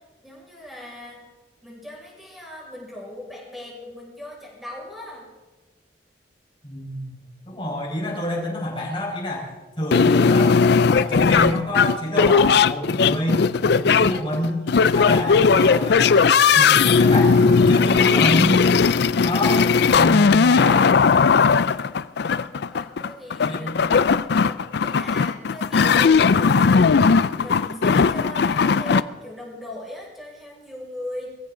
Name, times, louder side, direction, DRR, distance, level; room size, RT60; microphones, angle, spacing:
voice 1, 0.2-1.2 1.6-5.3 22.7-23.7 24.4-27.1 27.4-31.3, left 1 dB, ahead, -4 dB, 6.0 m, -38 dB
voice 2, 6.6-7.2 7.4-9.5 9.8-10.5 10.9-14.6 14.9-18.6 19.2-19.7 19.9-20.9 23.4-23.8, left 1 dB, 30° left, -3 dB, 5.0 m, -27 dB
sound 1, 9.9-29.0, left 5 dB, 60° left, 0.4 m, -17 dB
22.0 x 15.5 x 3.8 m, 1.2 s
head